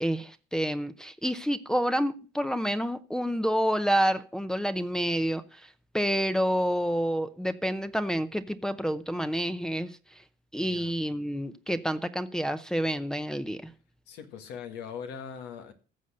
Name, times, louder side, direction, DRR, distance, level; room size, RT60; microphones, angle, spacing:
voice 1, 0.0-5.6 5.9-9.9 10.5-13.7, equal, 5° left, 0.7 m, -28 dB
voice 2, 10.6-10.9 14.1-15.7, left 7 dB, 90° left, 2.0 m, -41 dB
15.0 x 6.4 x 6.5 m
cardioid pair, 110°, 17 cm